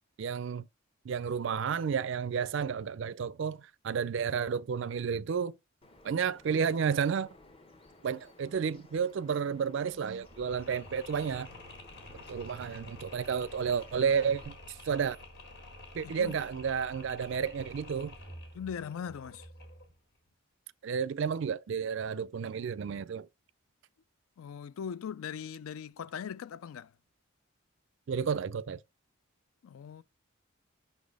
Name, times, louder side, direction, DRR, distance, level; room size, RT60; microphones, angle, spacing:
voice 1, 0.2-0.7 1.0-5.5 6.0-7.3 8.0-11.5 12.3-15.2 15.9-18.1 20.8-23.3 28.1-28.8, right 6 dB, 55° right, 0.3 m, -31 dB
Bird vocalization bird call bird song, 5.8-14.5, left 1 dB, 25° left, 0.9 m, -57 dB
Mechanisms, 10.2-20.0, left 2 dB, 50° left, 1.7 m, -49 dB
voice 2, 16.0-16.4 18.5-19.5 24.4-26.9 29.6-30.0, left 7 dB, 70° left, 0.3 m, -40 dB
5.9 x 4.0 x 4.7 m
head